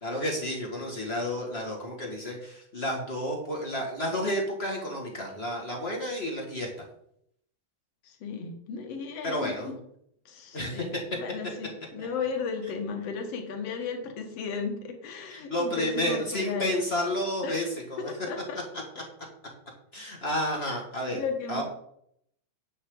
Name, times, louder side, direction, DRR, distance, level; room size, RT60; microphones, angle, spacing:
voice 1, 0.0-6.7 9.2-9.7 10.5-10.8 15.3-17.6 17.9-18.1 19.9-21.2 21.5-21.6, left 1 dB, 30° left, -1 dB, 1.3 m, -31 dB
voice 2, 8.0-9.8 10.3-16.7 17.4-17.7 18.0-18.6 19.0-19.1 21.1-21.6, left 5 dB, 55° left, 3 dB, 2.2 m, -35 dB
9.9 x 8.0 x 3.9 m, 0.70 s
omnidirectional pair, 4.1 m